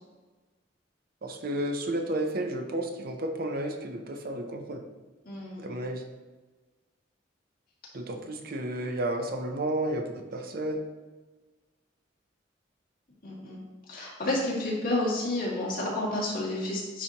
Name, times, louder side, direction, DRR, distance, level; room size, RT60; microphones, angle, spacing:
voice 1, 1.2-4.8 5.6-6.0 7.9-10.8, right 1 dB, 50° right, 5 dB, 0.6 m, -32 dB
voice 2, 5.3-5.7 13.2-13.6 13.9-17.0, left 1 dB, 50° left, -5 dB, 2.1 m, -30 dB
9.6 x 4.2 x 2.9 m, 1.3 s
head